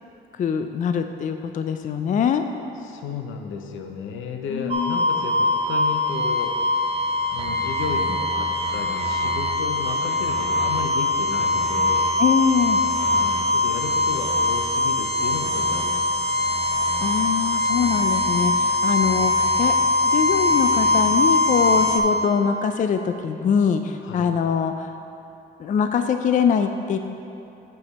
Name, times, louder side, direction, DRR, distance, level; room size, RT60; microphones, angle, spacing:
voice 1, 0.4-2.4 4.5-5.1 12.2-12.8 17.0-19.7 20.1-24.9 25.6-27.0, left 7 dB, 40° left, 7 dB, 0.4 m, -23 dB
voice 2, 2.8-6.6 7.3-12.1 13.0-16.6 18.9-19.2 24.0-24.3, left 5 dB, 80° left, 4 dB, 0.7 m, -33 dB
sound 1, 4.7-22.0, left 2 dB, 30° right, 0.8 m, -22 dB
7.0 x 6.8 x 4.1 m, 2.8 s
cardioid pair, 90°, 20 cm